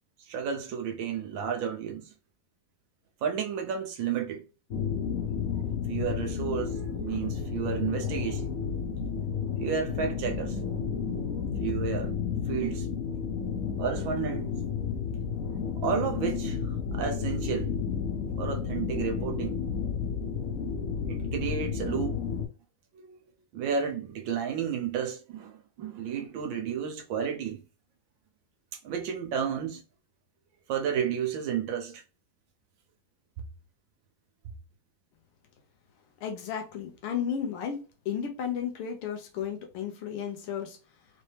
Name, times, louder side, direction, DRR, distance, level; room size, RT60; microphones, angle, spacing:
voice 1, 0.2-2.1 3.2-4.4 5.9-8.5 9.6-10.6 11.6-12.1 12.5-12.9 13.8-14.6 15.8-17.7 18.4-19.6 21.1-22.2 22.9-23.2 23.5-27.7 28.8-29.8 30.7-32.0, right 7 dB, 70° right, 1.3 m, -32 dB
sound 1, 4.7-22.5, left 6 dB, 65° left, 0.8 m, -32 dB
voice 2, 36.2-37.8 38.1-40.8, left 8 dB, 85° left, 1.9 m, -33 dB
4.3 x 3.1 x 3.2 m
omnidirectional pair, 2.4 m